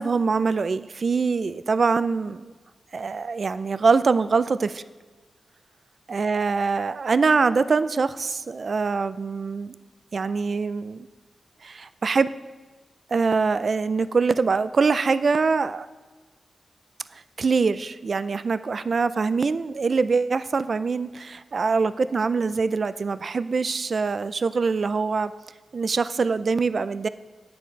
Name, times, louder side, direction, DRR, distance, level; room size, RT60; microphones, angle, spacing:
voice 1, 0.0-2.5 2.9-4.8 6.1-9.7 10.1-11.1 11.6-12.3 13.1-15.9 17.1-25.3 25.7-27.1, right 4 dB, 55° right, 15 dB, 0.4 m, -24 dB
9.5 x 7.6 x 5.2 m, 1.3 s
wide cardioid pair, 95°, 0 cm